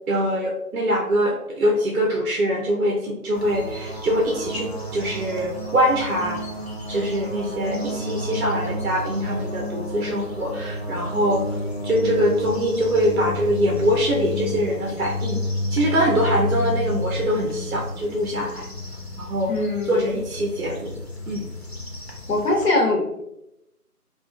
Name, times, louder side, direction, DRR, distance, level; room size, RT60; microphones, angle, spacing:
voice 1, 0.1-6.4 6.9-11.4 11.8-15.4 15.7-18.7 19.2-19.5 19.9-20.9 21.3-21.5, equal, 70° right, -1 dB, 0.6 m, -23 dB
sound 1, 3.3-22.7, left 1 dB, 45° left, 0.4 m, -31 dB
voice 2, 19.5-20.2 22.3-23.2, left 2 dB, 90° left, 1 dB, 0.7 m, -22 dB
2.4 x 2.2 x 2.3 m, 0.84 s
figure-of-eight pair, 165°, 46 cm